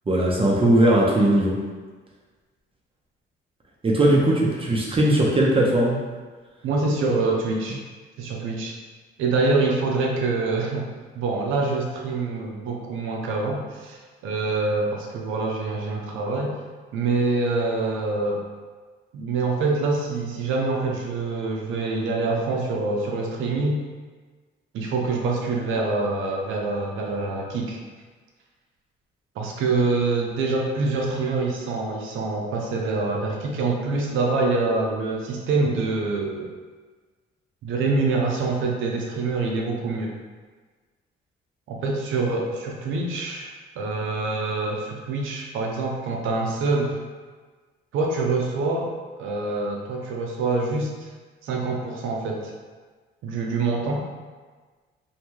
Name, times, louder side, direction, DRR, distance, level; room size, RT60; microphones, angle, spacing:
voice 1, 0.1-1.6 3.8-6.1, right 1 dB, 30° right, -3 dB, 0.6 m, -19 dB
voice 2, 6.6-7.8 8.2-8.8 9.2-10.9 11.1-16.6 16.9-18.4 19.1-23.8 24.7-27.8 29.4-36.5 37.6-40.1 41.7-47.0 47.9-48.9 49.2-50.9 51.4-52.5 53.2-54.0, right 3 dB, 80° right, 0 dB, 0.5 m, -25 dB
2.7 x 2.2 x 3.0 m, 1.4 s
cardioid pair, 90°, 20 cm